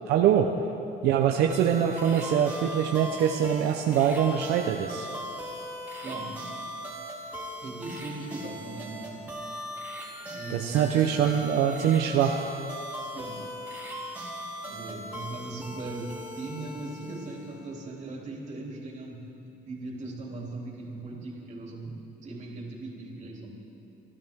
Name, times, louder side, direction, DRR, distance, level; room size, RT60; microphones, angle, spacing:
voice 1, 0.1-0.5 1.0-5.1 10.5-12.5, right 9 dB, 80° right, 3 dB, 0.8 m, -24 dB
sound 1, 1.5-17.7, equal, 10° right, 3.8 m, -39 dB
voice 2, 6.0-6.4 7.6-9.4 10.3-11.0 13.0-13.5 14.6-19.3 19.6-23.5, right 2 dB, 45° right, -1 dB, 3.1 m, -39 dB
26.0 x 12.5 x 3.7 m, 2.8 s
cardioid pair, 110°, 17 cm